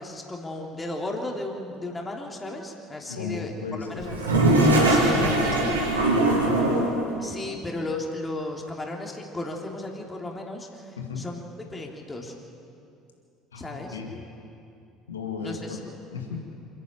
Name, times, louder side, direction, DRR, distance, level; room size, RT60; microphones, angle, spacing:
voice 1, 0.0-3.5 3.8-4.3 4.8-5.6 7.2-11.4 11.7-12.3 13.5-14.0 15.4-15.8, left 2 dB, 20° left, 0 dB, 3.0 m, -35 dB
voice 2, 3.1-4.0 4.9-5.8 6.5-6.8 11.0-11.2 13.5-14.2 15.1-15.8 16.1-16.4, left 5 dB, 85° left, 1 dB, 2.3 m, -35 dB
Toilet flush, 4.0-7.0, right 1 dB, 90° right, 3.1 m, -21 dB
27.0 x 10.5 x 9.0 m, 2.6 s
hypercardioid pair, 60°, 0 cm